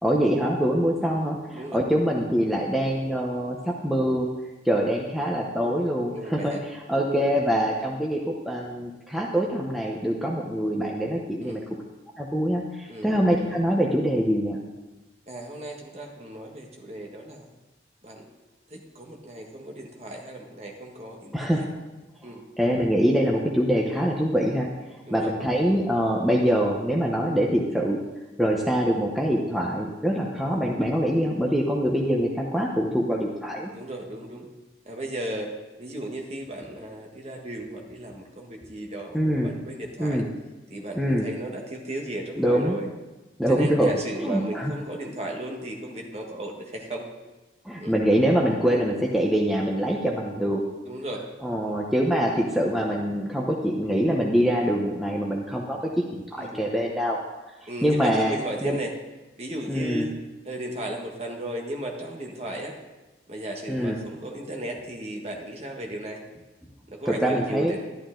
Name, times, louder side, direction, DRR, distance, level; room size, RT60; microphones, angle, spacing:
voice 1, 0.0-4.3 4.6-11.6 12.2-14.6 21.3-21.7 22.6-24.7 25.1-28.0 28.4-33.7 39.1-39.5 40.0-40.3 40.9-41.3 42.4-42.8 43.4-43.9 44.2-44.7 47.6-50.6 51.4-57.2 57.8-58.3 58.6-58.8 59.7-60.1 63.7-64.0 67.0-67.7, equal, ahead, -2 dB, 0.8 m, -24 dB
voice 2, 6.1-6.6 11.4-11.7 12.9-13.1 15.3-17.5 18.0-18.3 18.7-21.6 22.2-22.4 25.1-25.3 33.7-34.5 34.8-35.5 35.8-40.2 40.7-42.9 43.5-47.1 47.8-47.9 50.8-51.2 56.4-56.7 57.7-58.9 59.4-60.1 60.4-62.7 63.3-66.2 66.9-67.9, right 1 dB, 35° right, 1 dB, 1.5 m, -35 dB
12.0 x 11.5 x 3.8 m, 1.1 s
head